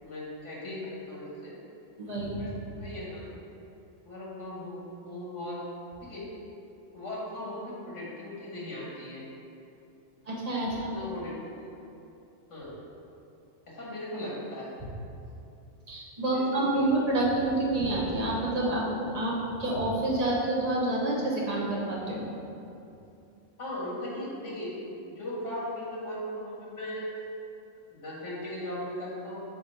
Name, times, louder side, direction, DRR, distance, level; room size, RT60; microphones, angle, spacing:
voice 1, 0.0-1.6 2.3-2.5 2.8-3.3 4.0-5.6 6.0-6.2 6.9-9.3 10.7-11.7 12.5-12.7 13.7-14.7 16.2-17.0 23.6-24.7 25.0-27.1 27.9-29.4, left 1 dB, 75° left, -6 dB, 1.9 m, -38 dB
voice 2, 2.0-2.4 10.3-10.9 15.9-22.2, right 1 dB, 35° right, -5 dB, 1.1 m, -28 dB
4.8 x 4.1 x 5.5 m, 2.7 s
omnidirectional pair, 1.3 m